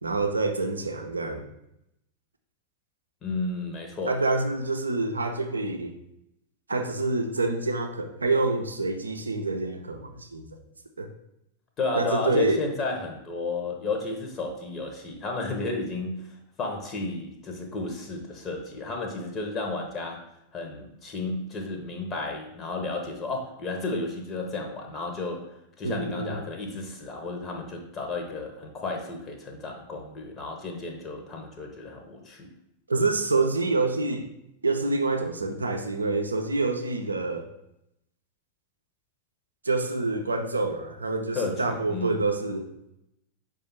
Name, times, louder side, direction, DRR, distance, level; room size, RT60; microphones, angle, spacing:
voice 1, 0.0-1.5 4.1-5.9 6.7-10.5 11.0-11.1 12.0-12.6 25.8-26.4 32.9-34.3 34.6-37.5 39.6-42.7, right 3 dB, 75° right, 5 dB, 0.5 m, -27 dB
voice 2, 3.2-4.2 11.8-20.2 20.5-25.5 25.8-32.5 41.3-42.2, left 3 dB, 30° left, 2 dB, 0.8 m, -32 dB
4.9 x 2.4 x 4.3 m, 0.81 s
figure-of-eight pair, 90°, 0 cm